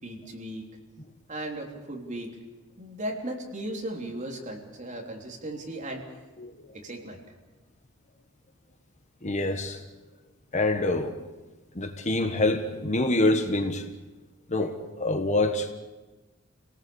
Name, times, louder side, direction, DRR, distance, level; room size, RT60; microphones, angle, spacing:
voice 1, 0.0-0.6 1.3-2.3 2.8-6.0 6.7-7.2, right 1 dB, 35° right, 3.5 m, -36 dB
voice 2, 9.2-9.8 10.5-11.1 11.7-13.9 14.5-15.7, left 2 dB, 35° left, 1.4 m, -26 dB
27.5 x 18.5 x 7.2 m
head